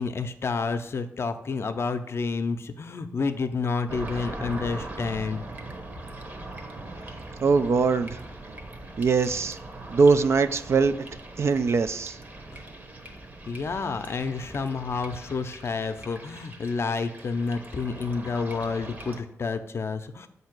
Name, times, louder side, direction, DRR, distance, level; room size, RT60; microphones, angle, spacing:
voice 1, 0.0-5.4 13.5-20.3, left 4 dB, 55° left, 9 dB, 0.5 m, -29 dB
sound 1, 3.9-19.2, right 2 dB, 35° right, 1.0 m, -41 dB
voice 2, 7.4-8.2 9.0-9.6 9.9-10.9 11.4-12.2, right 4 dB, 60° right, 11 dB, 0.4 m, -21 dB
7.5 x 2.7 x 5.9 m, 0.74 s
cardioid pair, 85°, 5 cm